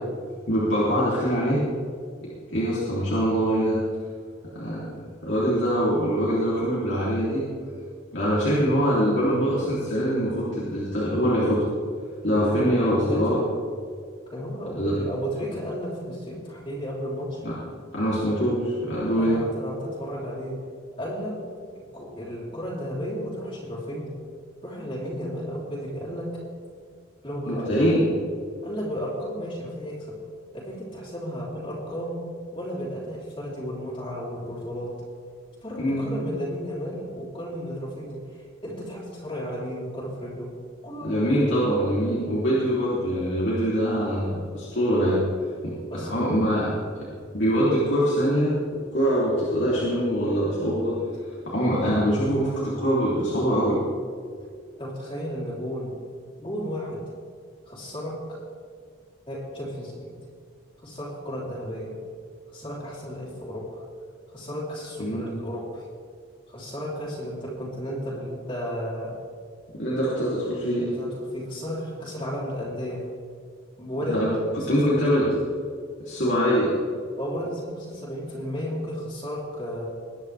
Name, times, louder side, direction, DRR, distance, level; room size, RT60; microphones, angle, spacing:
voice 1, 0.5-1.6 2.5-3.8 4.5-4.9 5.2-7.4 8.1-11.6 12.2-13.4 14.7-14.9 17.4-17.5 17.9-19.4 27.4-28.1 35.8-36.0 41.0-45.2 45.6-46.7 47.3-48.5 48.9-51.0 51.5-53.8 65.0-65.4 69.8-70.9 74.1-74.3 74.7-75.3 76.0-76.7, equal, 65° left, -8 dB, 3.2 m, -23 dB
voice 2, 12.4-13.3 14.3-17.4 19.2-20.6 21.0-21.4 21.9-24.2 24.6-26.4 27.2-28.1 28.6-30.2 30.5-32.2 32.5-34.9 35.6-40.5 40.8-41.2 41.6-41.8 45.9-46.4 54.8-56.0 56.4-57.0 57.6-58.4 59.3-60.1 60.8-61.9 62.5-63.8 64.3-65.9 66.5-69.1 70.8-73.0 73.8-74.1 74.6-75.1 77.2-79.9, equal, 25° left, -7 dB, 3.5 m, -33 dB
22.0 x 10.0 x 3.5 m, 2.2 s
head